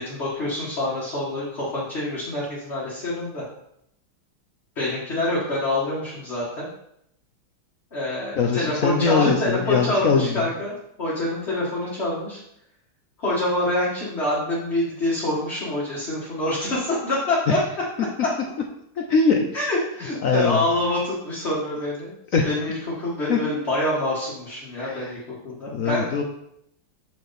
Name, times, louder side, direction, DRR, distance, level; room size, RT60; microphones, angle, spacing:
voice 1, 0.0-3.4 4.8-6.7 7.9-12.4 13.2-17.6 18.2-18.3 19.5-22.1 22.4-25.2 25.4-26.1, left 1 dB, 35° left, -7 dB, 1.9 m, -26 dB
voice 2, 8.4-10.5 17.5-17.6 19.0-19.5 20.2-20.6 22.3-22.5 23.3-23.4 24.8-25.1 25.7-26.2, left 5 dB, 65° left, 3 dB, 0.8 m, -22 dB
6.8 x 6.2 x 4.2 m, 0.75 s
omnidirectional pair, 2.3 m